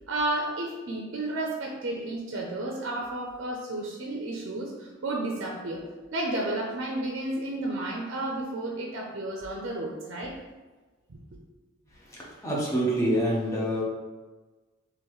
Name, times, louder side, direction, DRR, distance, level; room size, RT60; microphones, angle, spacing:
voice 1, 0.1-5.9 6.1-10.4 11.1-11.2, right 2 dB, 60° right, 0 dB, 0.5 m, -32 dB
voice 2, 12.1-13.8, right 1 dB, 15° left, -5 dB, 0.9 m, -26 dB
3.9 x 3.0 x 3.1 m, 1.3 s
head